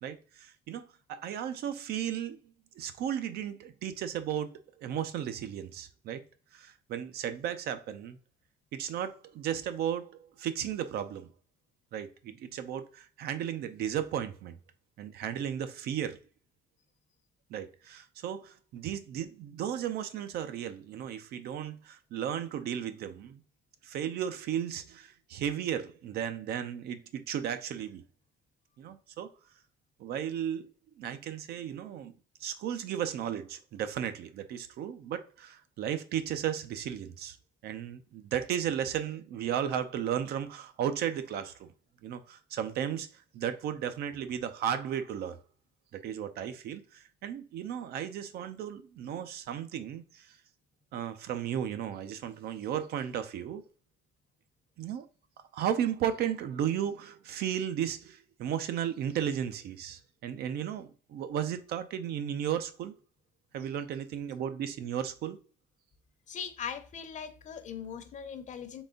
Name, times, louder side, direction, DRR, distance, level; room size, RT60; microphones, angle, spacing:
voice 1, 0.0-2.4 2.8-6.2 6.5-8.2 8.7-11.3 11.9-14.6 15.0-16.2 17.5-23.4 23.8-28.0 28.8-29.3 30.0-30.7 31.0-32.1 32.4-37.4 37.6-41.7 42.0-43.1 43.3-45.4 45.9-50.4 50.9-53.6 54.8-55.1 55.5-62.9 63.5-65.4, right 9 dB, 70° right, 0.6 m, -35 dB
voice 2, 66.3-68.8, left 7 dB, 45° left, 0.8 m, -40 dB
4.0 x 3.4 x 3.8 m
cardioid pair, 110°, 17 cm